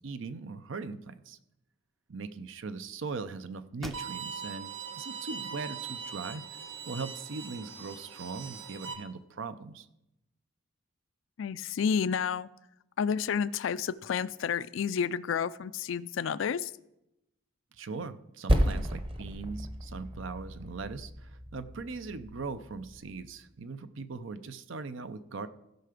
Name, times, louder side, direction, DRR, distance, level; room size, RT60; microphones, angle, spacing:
voice 1, 0.0-1.4 2.1-6.4 6.9-9.9 17.8-25.5, right 4 dB, 70° right, 12 dB, 0.6 m, -40 dB
sound 1, 3.8-4.6 5.1-5.2 5.7-6.6, equal, ahead, 0.4 m, -48 dB
Bowed string instrument, 3.9-8.9, right 6 dB, 85° right, 1.5 m, -41 dB
voice 2, 11.4-12.5 13.0-16.7, left 7 dB, 70° left, 18 dB, 0.4 m, -30 dB
Percussion, 18.5-23.3, equal, 25° right, 0.9 m, -32 dB
16.0 x 5.7 x 5.0 m, 0.87 s
head